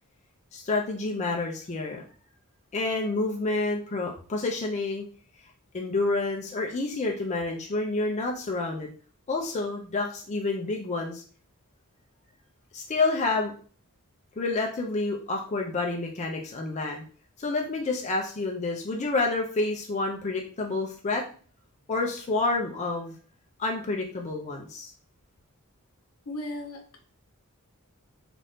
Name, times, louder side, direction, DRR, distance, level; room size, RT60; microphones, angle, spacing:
voice 1, 0.5-2.0 2.7-5.0 5.7-8.9 9.3-11.2 12.7-13.5 14.4-17.0 17.4-21.2 21.9-23.1 23.6-24.9, left 3 dB, 30° left, 0 dB, 0.4 m, -29 dB
voice 2, 26.3-27.0, left 1 dB, 75° left, 3 dB, 0.8 m, -36 dB
2.7 x 2.5 x 3.4 m, 0.41 s
head